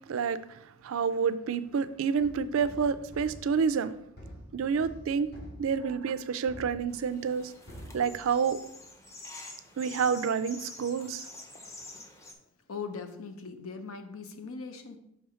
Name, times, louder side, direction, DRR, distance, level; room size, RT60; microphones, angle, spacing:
voice 1, 0.1-3.9 4.5-5.3 5.6-7.5 7.9-8.6 9.8-11.3, right 6 dB, 75° right, 0.4 m, -29 dB
sound 1, 2.2-7.4 7.7-8.7, equal, 50° left, 1.5 m, -48 dB
sound 2, 6.9-12.3, left 2 dB, 15° left, 0.7 m, -47 dB
voice 2, 12.7-15.0, left 5 dB, 85° left, 0.8 m, -40 dB
6.3 x 3.4 x 4.9 m
head